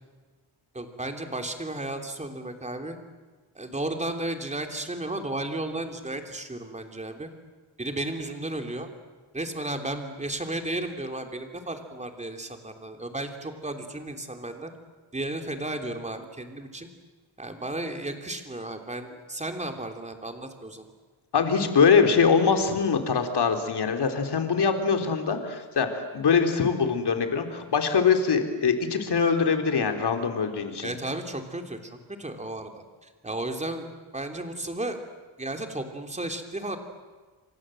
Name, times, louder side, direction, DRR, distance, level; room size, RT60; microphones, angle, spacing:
voice 1, 0.7-3.0 3.5-7.3 7.8-8.9 9.3-14.7 15.1-16.9 17.4-20.8 22.7-22.8 30.8-31.8 32.2-33.9 34.1-35.0 35.4-36.8, right 2 dB, 15° right, 5 dB, 3.2 m, -34 dB
voice 2, 21.3-30.9, left 5 dB, 55° left, 5 dB, 3.6 m, -23 dB
29.5 x 25.5 x 7.8 m, 1.4 s
wide cardioid pair, 130°, 47 cm